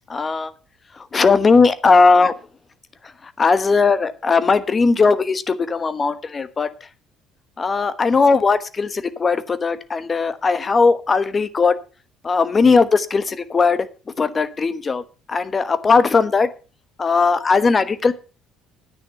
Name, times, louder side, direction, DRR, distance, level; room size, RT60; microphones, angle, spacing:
voice 1, 0.1-0.5 1.0-2.3 3.2-6.7 7.6-11.8 12.2-13.9 14.2-15.0 15.3-16.5 17.0-18.1, left 4 dB, 35° left, 13 dB, 1.1 m, -18 dB
9.8 x 9.4 x 5.6 m, 0.35 s
hypercardioid pair, 60°, 0 cm